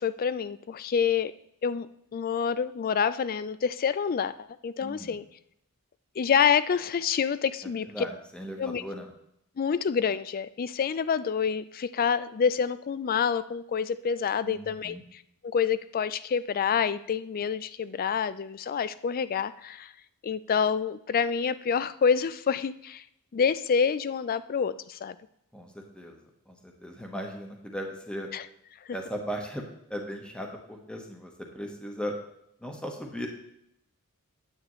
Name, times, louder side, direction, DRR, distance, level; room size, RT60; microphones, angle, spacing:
voice 1, 0.0-1.3 1.6-1.9 2.1-4.3 4.6-5.2 6.2-7.9 8.6-8.8 9.6-15.2 15.5-19.9 20.2-23.0 23.3-25.2 28.3-28.4, left 6 dB, 40° left, 15 dB, 0.4 m, -27 dB
voice 2, 4.8-5.2 7.9-9.1 14.4-15.0 25.5-28.3 28.9-32.1 32.6-33.3, equal, 5° left, 1 dB, 1.1 m, -38 dB
9.7 x 8.5 x 3.1 m, 0.79 s
head